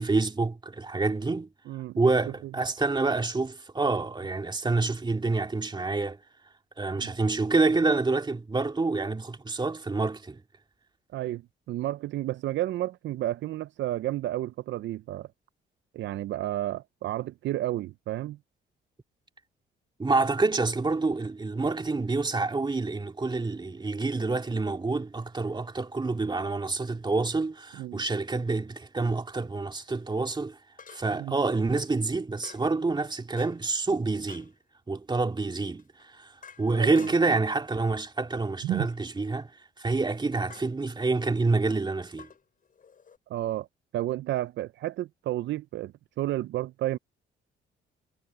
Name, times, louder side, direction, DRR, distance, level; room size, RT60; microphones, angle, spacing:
voice 1, 0.0-1.5 2.0-6.2 6.8-10.4 20.0-30.6 30.9-34.5 34.9-36.3 36.6-39.5 39.8-42.3, right 3 dB, 20° right, 2.5 m, -27 dB
voice 2, 1.7-2.1 2.4-2.5 6.9-7.1 11.1-11.4 11.7-15.3 15.9-18.4 27.8-28.0 31.1-31.4 36.7-37.1 38.6-38.9 43.3-43.7 43.9-47.0, right 14 dB, 70° right, 0.4 m, -31 dB
sound 1, 27.1-27.2 30.8-31.3 32.4-32.8 33.4-33.8 34.3-34.6 35.8-37.4 38.8-39.2 40.5-40.8 42.2-43.2, left 6 dB, 45° left, 6.4 m, -51 dB
cardioid pair, 90°, 20 cm